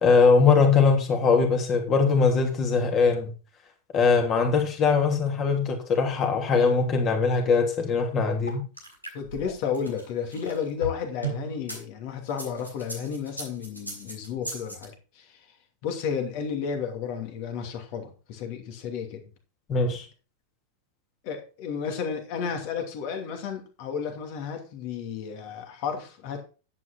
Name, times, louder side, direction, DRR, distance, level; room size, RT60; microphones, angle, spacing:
voice 1, 0.0-3.3 3.9-8.6 19.7-20.0, left 5 dB, 30° left, 3 dB, 3.0 m, -21 dB
sound 1, 8.5-11.8 12.3-14.8, right 2 dB, 90° left, 5.2 m, -36 dB
voice 2, 9.1-15.5 15.8-19.2 21.2-26.4, left 7 dB, 45° left, 5 dB, 2.7 m, -32 dB
10.5 x 8.6 x 4.3 m, 0.35 s
figure-of-eight pair, 90°, 0 cm